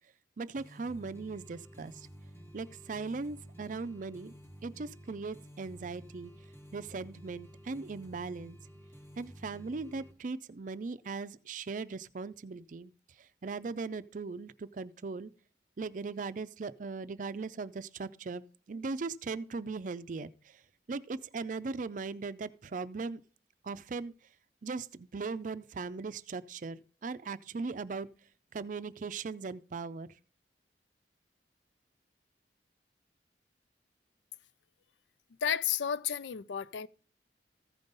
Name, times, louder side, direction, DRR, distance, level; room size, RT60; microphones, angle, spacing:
voice 1, 0.4-2.1 2.5-4.3 4.6-6.3 6.7-8.6 9.2-12.9 13.4-15.3 15.8-20.3 20.9-23.2 23.6-24.1 24.6-28.1 28.5-30.1, right 4 dB, 45° right, 0.4 m, -39 dB
sound 1, 0.5-10.1, equal, 15° left, 1.2 m, -52 dB
voice 2, 35.4-36.9, left 8 dB, 90° left, 0.4 m, -32 dB
14.5 x 5.3 x 3.9 m
head